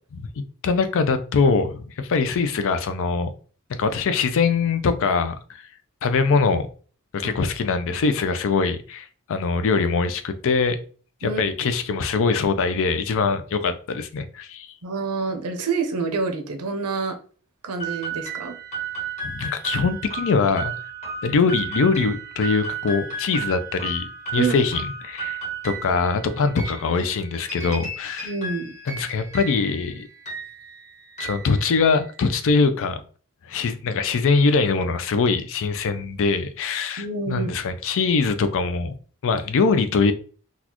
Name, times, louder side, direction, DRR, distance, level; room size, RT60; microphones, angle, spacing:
voice 1, 0.6-3.3 3.7-5.6 6.0-6.7 7.1-10.8 11.2-14.7 19.2-20.7 21.2-28.3 28.9-30.1 31.2-33.0 33.4-39.0 39.2-40.1, left 4 dB, 60° left, 10 dB, 0.4 m, -22 dB
voice 2, 14.8-17.2 17.6-18.5 24.4-24.6 28.2-28.7 37.0-37.5, right 4 dB, 85° right, 5 dB, 0.7 m, -27 dB
sound 1, 17.8-32.2, right 5 dB, 30° left, 1.2 m, -34 dB
4.0 x 2.3 x 2.9 m, 0.41 s
head